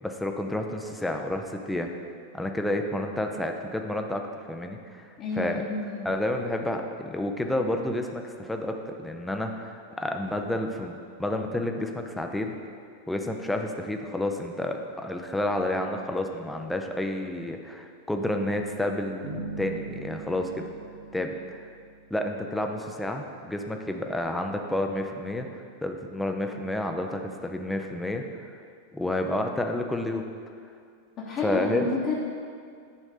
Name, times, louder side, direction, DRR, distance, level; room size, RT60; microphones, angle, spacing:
voice 1, 0.0-1.9 2.3-5.1 5.4-5.6 6.0-12.6 13.1-20.6 21.1-21.7 22.1-28.5 28.9-30.2 31.4-31.9, left 1 dB, 5° left, 3 dB, 0.5 m, -30 dB
voice 2, 5.2-6.0 31.2-32.1, left 4 dB, 35° left, -6 dB, 1.0 m, -30 dB
Bass guitar, 19.2-22.3, right 4 dB, 75° right, 1.8 m, -40 dB
9.1 x 3.2 x 5.0 m, 2.2 s
figure-of-eight pair, 90°, 0 cm